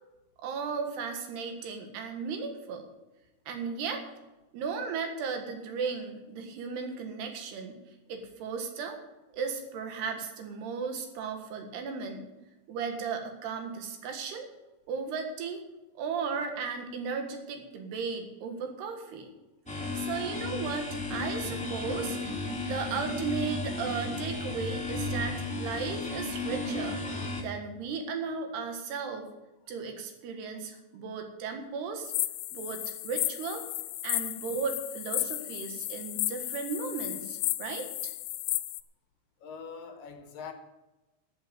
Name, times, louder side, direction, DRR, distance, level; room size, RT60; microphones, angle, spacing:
voice 1, 0.4-2.9 3.5-4.0 4.5-7.7 8.1-9.0 9.3-12.3 12.7-14.5 14.9-15.7 16.0-19.3 19.7-22.2 22.6-29.3 29.7-32.1 32.5-33.6 34.0-37.9, right 5 dB, 80° right, 3.8 m, -35 dB
sound 1, 19.7-27.4, left 2 dB, 5° left, 1.3 m, -34 dB
sound 2, 32.0-38.8, left 16 dB, 90° left, 2.0 m, -33 dB
voice 2, 39.4-40.5, left 6 dB, 70° left, 2.5 m, -43 dB
12.5 x 8.1 x 7.6 m
omnidirectional pair, 4.6 m